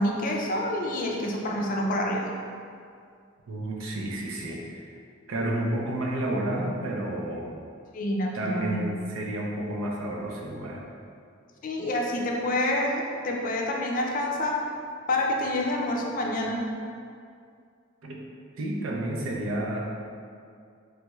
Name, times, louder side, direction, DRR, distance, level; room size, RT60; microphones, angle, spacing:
voice 1, 0.0-2.3 7.9-8.8 11.6-14.6 15.1-16.7, left 1 dB, 40° left, -1 dB, 0.4 m, -27 dB
voice 2, 3.5-4.9 5.3-7.6 8.3-10.8 18.0-18.2 18.6-19.8, right 1 dB, 85° right, -2 dB, 0.5 m, -31 dB
3.2 x 2.3 x 3.0 m, 2.3 s
head